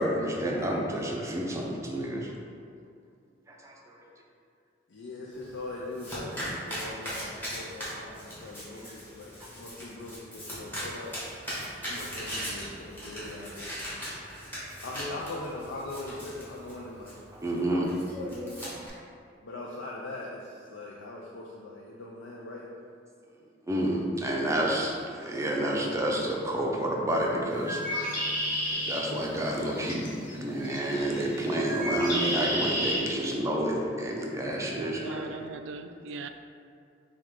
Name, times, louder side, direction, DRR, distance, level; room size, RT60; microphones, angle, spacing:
voice 1, 0.0-2.3 3.6-3.7 17.4-17.9 23.7-28.3 28.6-35.4, right 1 dB, 15° right, -2 dB, 0.5 m, -29 dB
voice 2, 4.9-11.1 11.8-13.7 14.8-17.2 17.5-17.9 18.2-18.3 19.4-22.7 25.0-25.7, left 2 dB, 85° left, -3 dB, 0.4 m, -41 dB
Domestic sounds home sounds, 5.3-18.9, equal, 10° left, 1.4 m, -39 dB
Bird, 27.5-33.0, equal, 50° left, 1.3 m, -32 dB
voice 3, 34.8-36.3, right 4 dB, 90° right, 9 dB, 0.3 m, -40 dB
5.9 x 2.3 x 3.6 m, 2.3 s
head